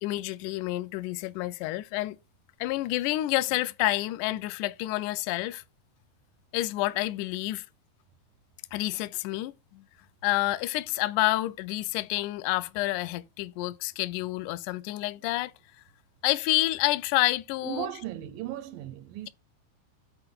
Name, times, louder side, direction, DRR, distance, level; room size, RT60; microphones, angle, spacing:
voice 1, 0.0-2.2 2.6-5.6 6.5-7.6 8.7-9.8 10.2-15.5 16.2-17.9, left 18 dB, 85° left, 1.8 m, -29 dB
voice 2, 17.6-19.3, right 11 dB, 80° right, 2.1 m, -36 dB
7.8 x 4.5 x 6.7 m
omnidirectional pair, 4.3 m